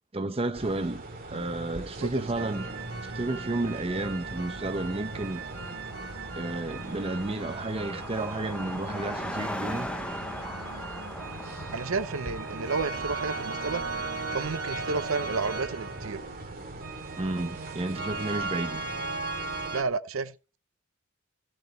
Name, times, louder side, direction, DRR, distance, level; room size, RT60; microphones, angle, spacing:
voice 1, 0.1-1.0 1.3-2.6 3.0-5.4 6.4-9.9 17.2-18.8, right 2 dB, 25° right, 0.8 m, -31 dB
sound 1, 0.5-19.7, right 2 dB, 45° right, 2.9 m, -42 dB
voice 2, 2.0-2.5 11.7-13.8 14.3-16.2 19.7-20.3, right 4 dB, 70° right, 0.7 m, -31 dB
sound 2, 2.3-19.8, right 3 dB, 85° right, 2.9 m, -38 dB
Car passing by, 4.3-4.4 4.6-15.6, left 1 dB, 5° left, 0.7 m, -41 dB
16.0 x 6.4 x 4.2 m
head